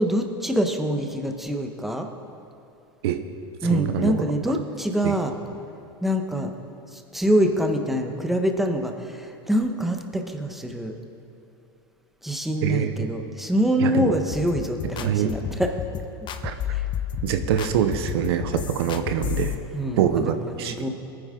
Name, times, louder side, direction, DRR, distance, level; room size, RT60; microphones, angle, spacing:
voice 1, 0.0-2.1 3.6-5.3 6.0-6.5 6.9-10.9 12.2-16.0 16.7-16.9 19.7-20.9, equal, ahead, 4 dB, 1.2 m, -25 dB
voice 2, 3.6-4.2 5.0-5.2 12.6-13.1 13.8-14.2 15.0-15.4 16.4-16.5 17.2-19.6 20.0-20.9, right 9 dB, 75° right, 8 dB, 0.9 m, -24 dB
sound 1, 14.3-19.5, left 10 dB, 35° left, 0.9 m, -31 dB
20.0 x 9.8 x 3.8 m, 2.6 s
hypercardioid pair, 105°, 13 cm